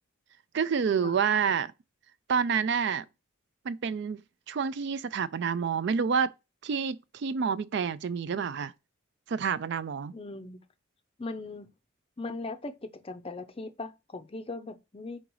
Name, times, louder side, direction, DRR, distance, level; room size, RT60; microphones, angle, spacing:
voice 1, 0.5-1.7 2.3-3.1 3.6-4.2 4.5-6.3 6.6-8.7 9.3-10.1, right 6 dB, 55° right, 0.3 m, -28 dB
voice 2, 10.1-10.6 11.2-11.7 12.2-15.2, left 3 dB, 25° left, 0.5 m, -39 dB
5.3 x 3.8 x 4.7 m
head